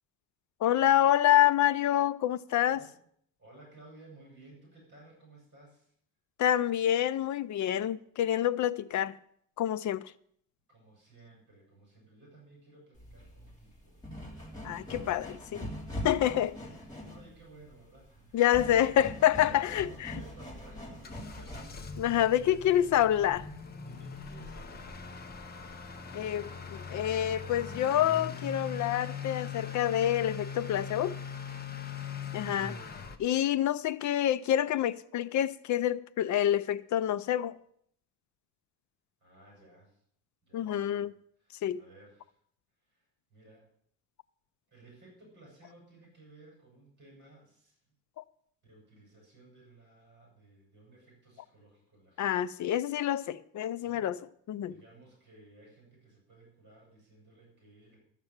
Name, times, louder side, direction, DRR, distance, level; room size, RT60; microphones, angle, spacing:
voice 1, 0.6-2.8 6.4-9.1 9.6-10.0 14.6-15.7 16.0-16.6 18.3-20.1 22.0-23.5 26.1-31.1 32.3-32.8 33.2-37.6 40.5-41.1 41.6-41.8 52.2-54.2 54.5-54.8, left 11 dB, 55° left, 0.5 m, -27 dB
voice 2, 3.4-5.9 10.7-14.0 14.6-14.9 15.3-15.5 16.7-19.0 19.4-22.9 23.8-24.9 31.9-32.4 39.2-40.0 40.4-41.1 41.4-42.4 42.8-43.7 44.7-47.8 48.6-52.3 53.8-54.1 54.6-58.0, right 2 dB, 30° right, 6.5 m, -57 dB
sound 1, 13.0-21.9, equal, 10° left, 3.0 m, -42 dB
Motor vehicle (road) / Accelerating revving vroom, 20.5-33.2, left 5 dB, 25° left, 0.8 m, -41 dB
13.0 x 6.7 x 7.3 m
cardioid pair, 180°, 35 cm